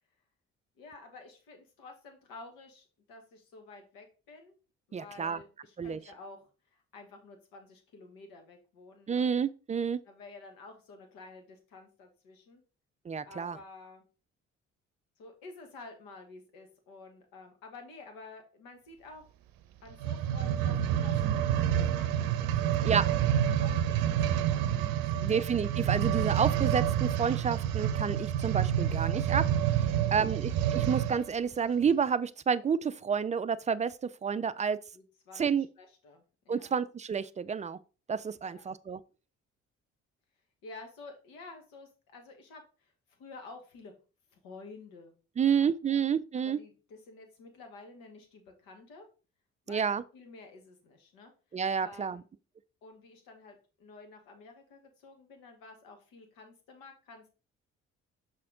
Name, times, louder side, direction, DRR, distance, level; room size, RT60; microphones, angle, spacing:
voice 1, 0.8-4.5 4.9-9.3 10.0-12.6 13.2-14.0 15.2-19.3 19.8-24.1 24.5-24.8 25.1-25.4 29.9-30.5 34.9-35.4 35.8-36.7 38.4-38.7 40.6-42.9 43.2-43.9 44.3-45.1 45.4-46.0 46.4-49.1 49.7-51.3 51.8-52.3 52.8-57.3, left 3 dB, 65° left, 1.7 m, -51 dB
voice 2, 4.9-5.4 5.8-6.0 9.1-10.0 13.1-13.6 22.8-23.0 25.2-29.4 29.7-34.8 35.4-35.7 36.5-37.8 38.1-39.0 45.4-46.6 49.7-50.0 51.5-52.2, right 6 dB, 20° right, 0.4 m, -30 dB
sound 1, 19.9-31.3 31.9-32.0, right 10 dB, 60° right, 0.7 m, -28 dB
5.8 x 4.5 x 3.7 m
hypercardioid pair, 45°, 37 cm